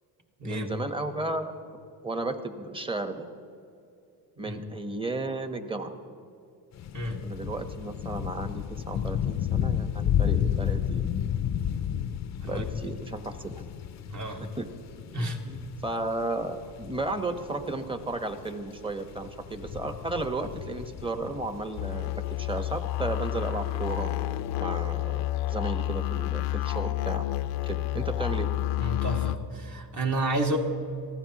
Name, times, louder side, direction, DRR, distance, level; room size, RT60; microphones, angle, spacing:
voice 1, 0.4-1.5 2.0-3.3 4.4-5.9 7.2-11.1 12.4-13.7 14.6-14.7 15.0-24.1 24.6-27.3 27.7-28.5, right 2 dB, 10° right, 8 dB, 1.1 m, -34 dB
sound 1, 6.7-24.2 24.5-24.6, left 9 dB, 40° left, 0.6 m, -32 dB
sound 2, 21.8-29.4, left 15 dB, 85° left, 0.7 m, -30 dB
voice 2, 28.8-30.6, right 1 dB, 40° right, 1 dB, 2.1 m, -30 dB
24.0 x 15.5 x 3.0 m, 2.6 s
cardioid pair, 90°, 43 cm